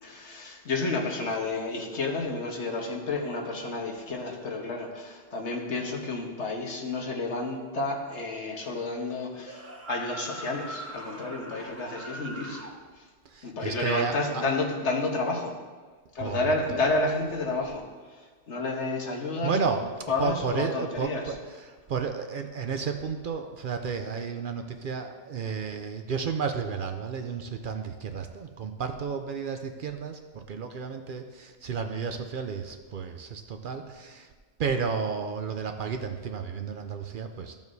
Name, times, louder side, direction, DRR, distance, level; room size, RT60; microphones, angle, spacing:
voice 1, 0.0-12.7 13.4-15.5 16.1-18.2 18.5-19.6 20.1-21.2, left 3 dB, 80° left, 1 dB, 1.5 m, -30 dB
sound 1, 9.4-12.8, right 1 dB, 15° right, 0.6 m, -42 dB
voice 2, 13.2-14.4 16.2-16.8 19.4-19.9 20.2-34.3 34.6-37.5, right 5 dB, 55° right, 6 dB, 0.6 m, -32 dB
14.0 x 7.1 x 2.7 m, 1.4 s
omnidirectional pair, 1.2 m